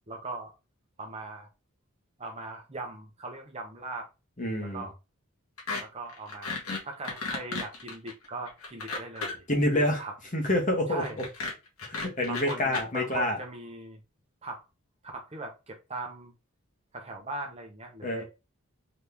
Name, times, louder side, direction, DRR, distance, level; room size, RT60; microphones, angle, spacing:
voice 1, 0.1-0.5 1.0-1.5 2.2-4.1 4.6-4.9 5.8-6.6 6.8-9.4 10.0-10.1 10.9-11.2 12.3-14.0 14.4-14.6 15.1-16.3 16.9-18.2, right 2 dB, 30° right, 0.9 m, -39 dB
voice 2, 4.4-4.9 9.5-10.0 10.3-11.0 11.9-13.4 18.0-18.2, left 1 dB, 35° left, 1.4 m, -27 dB
sound 1, 5.6-5.8 6.1-9.5 11.0-12.8, left 4 dB, 90° left, 1.6 m, -34 dB
4.0 x 3.1 x 3.5 m
head